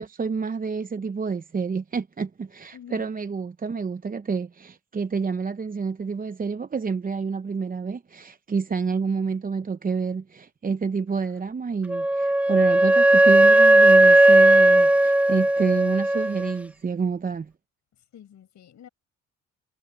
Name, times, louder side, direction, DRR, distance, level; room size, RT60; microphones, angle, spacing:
voice 1, 0.0-17.5, right 5 dB, 30° right, 0.9 m, -28 dB
voice 2, 2.7-3.1 18.1-18.9, left 9 dB, 65° left, 6.6 m, -46 dB
Wind instrument woodwind instrument, 11.9-16.5, right 1 dB, 5° right, 0.6 m, -16 dB
cardioid pair, 90°, 30 cm